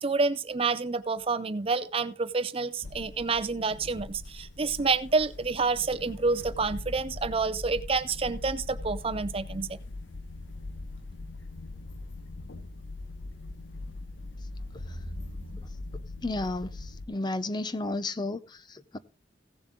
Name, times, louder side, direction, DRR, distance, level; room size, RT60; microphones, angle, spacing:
voice 1, 0.0-9.8, right 4 dB, 30° right, 0.5 m, -28 dB
sound 1, 2.8-17.1, left 2 dB, 70° left, 0.8 m, -41 dB
voice 2, 16.2-19.0, left 2 dB, 20° left, 0.5 m, -33 dB
16.5 x 7.1 x 3.7 m
head